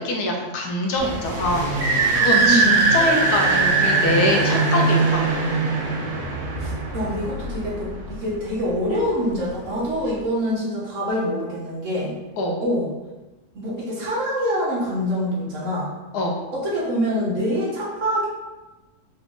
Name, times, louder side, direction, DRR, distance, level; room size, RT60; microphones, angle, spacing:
voice 1, 0.0-5.3 12.4-12.6 16.1-16.4, left 1 dB, 90° left, 1 dB, 1.3 m, -24 dB
sound 1, 1.0-8.3, right 3 dB, 90° right, 1.5 m, -21 dB
voice 2, 2.4-2.8 6.6-12.2 12.6-12.9 13.5-15.9 16.5-18.3, equal, 55° right, -5 dB, 1.3 m, -25 dB
4.1 x 2.5 x 3.5 m, 1.1 s
omnidirectional pair, 1.6 m